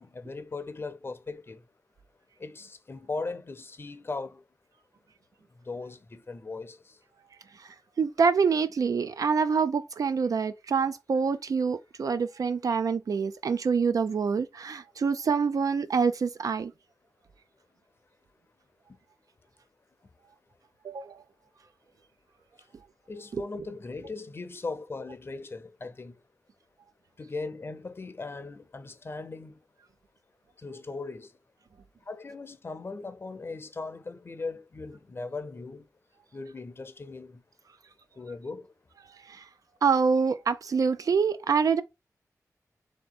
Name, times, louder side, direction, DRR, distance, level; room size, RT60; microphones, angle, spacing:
voice 1, 0.0-1.6 2.4-4.4 5.6-7.0 23.1-26.1 27.2-29.6 30.6-31.3 32.1-35.9 36.3-37.4 38.2-38.7, left 3 dB, 40° left, 0.6 m, -38 dB
voice 2, 8.0-16.7 20.8-21.2 23.3-23.4 39.3-39.4 39.8-41.8, right 5 dB, 75° right, 0.4 m, -26 dB
3.4 x 2.9 x 4.0 m
wide cardioid pair, 90°, 6 cm